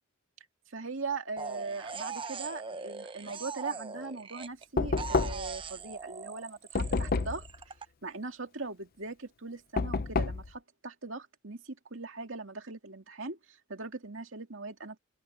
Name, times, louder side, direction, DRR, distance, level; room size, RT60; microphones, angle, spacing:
voice 1, 0.7-7.7 8.0-15.0, right 3 dB, 65° right, 2.5 m, -40 dB
sound 1, 1.4-4.6 5.0-7.8, right 4 dB, 25° right, 0.8 m, -41 dB
Knock, 4.8-5.6 6.8-7.5 9.8-10.5, left 4 dB, 45° left, 0.5 m, -29 dB
head